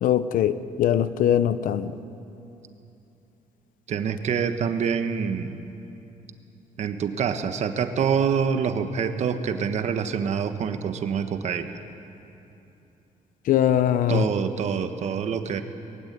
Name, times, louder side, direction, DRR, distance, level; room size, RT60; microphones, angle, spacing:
voice 1, 0.0-2.0 13.5-14.3, left 10 dB, 75° left, 13 dB, 0.8 m, -22 dB
voice 2, 3.9-5.6 6.8-11.7 14.1-15.6, right 7 dB, 55° right, 8 dB, 1.4 m, -26 dB
21.5 x 16.0 x 9.6 m, 2.8 s
cardioid pair, 150°, 14 cm